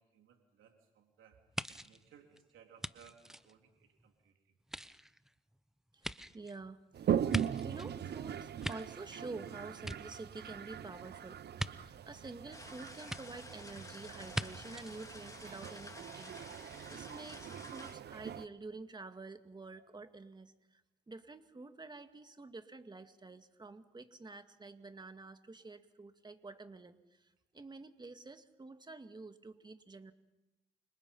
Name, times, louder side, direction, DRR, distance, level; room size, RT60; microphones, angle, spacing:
voice 1, 0.0-4.5, right 7 dB, 80° right, 3 dB, 3.7 m, -63 dB
sound 1, 1.5-4.1 4.6-7.9 8.4-9.4 9.7-10.6 11.6-11.7 13.1-13.2 14.3-14.5 14.8-14.9, equal, ahead, 0.9 m, -42 dB
voice 2, 5.9-7.2 7.6-30.1, right 3 dB, 20° right, 8 dB, 2.1 m, -49 dB
Toilet flush, 6.9-18.5, right 9 dB, 55° right, 1.0 m, -40 dB
sound 2, 12.5-17.9, left 2 dB, 15° left, 3.5 m, -52 dB
29.0 x 25.5 x 5.6 m, 0.97 s
cardioid pair, 90°, 20 cm